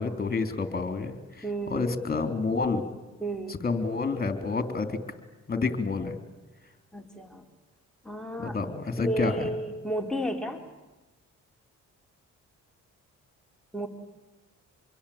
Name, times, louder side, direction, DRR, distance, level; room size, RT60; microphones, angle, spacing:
voice 1, 0.0-1.4 1.7-2.8 3.5-5.0 5.5-6.1 8.4-9.5, left 4 dB, 30° left, 9 dB, 3.7 m, -29 dB
voice 2, 1.4-1.9 3.2-3.6 6.9-7.4 8.0-8.6 9.0-10.7 13.7-13.9, right 1 dB, ahead, 2 dB, 3.6 m, -32 dB
26.5 x 22.5 x 8.8 m, 1.1 s
cardioid pair, 90°, 30 cm